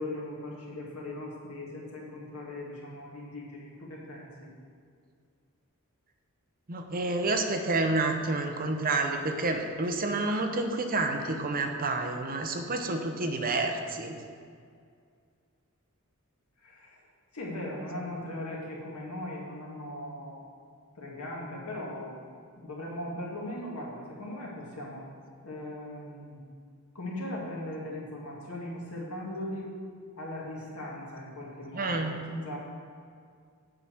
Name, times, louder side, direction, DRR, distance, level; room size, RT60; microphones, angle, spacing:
voice 1, 0.0-4.5 16.6-17.1 17.3-20.4 20.9-25.0 25.4-26.4 26.9-29.7 30.2-32.6, left 1 dB, 70° left, -3 dB, 2.4 m, -39 dB
voice 2, 6.7-14.2 31.7-32.1, right 2 dB, 40° right, 4 dB, 0.8 m, -29 dB
7.7 x 5.9 x 7.8 m, 2.2 s
head